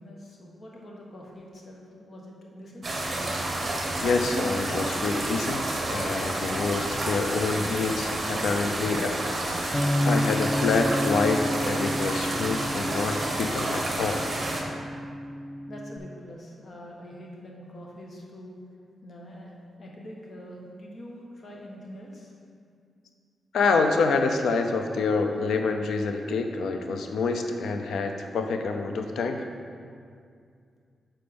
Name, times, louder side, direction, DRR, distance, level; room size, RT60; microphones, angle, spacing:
voice 1, 0.0-2.9 15.7-18.6 19.0-22.3, equal, 45° left, -2 dB, 1.3 m, -44 dB
sound 1, 2.8-14.6, right 1 dB, 35° right, 1.2 m, -30 dB
voice 2, 4.0-5.6 5.9-9.2 10.0-14.2 23.5-29.4, left 4 dB, 85° left, 5 dB, 0.6 m, -27 dB
Bass guitar, 9.7-16.0, equal, 10° left, 0.3 m, -30 dB
7.0 x 4.4 x 5.2 m, 2.3 s
cardioid pair, 100°, 0 cm